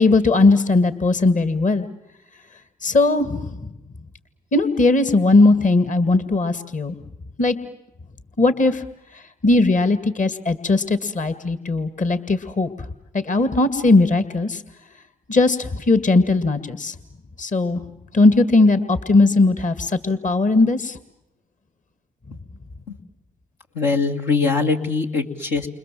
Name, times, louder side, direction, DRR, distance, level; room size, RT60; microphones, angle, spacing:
voice 1, 0.0-1.9 2.8-3.5 4.5-7.0 7.4-7.6 8.4-8.8 9.4-12.7 13.1-14.6 15.3-17.0 17.4-17.8 18.1-21.0, left 3 dB, 45° left, 12 dB, 2.1 m, -18 dB
voice 2, 23.7-25.7, left 4 dB, 80° left, 1 dB, 2.5 m, -22 dB
29.5 x 26.0 x 7.7 m, 0.89 s
hypercardioid pair, 45°, 18 cm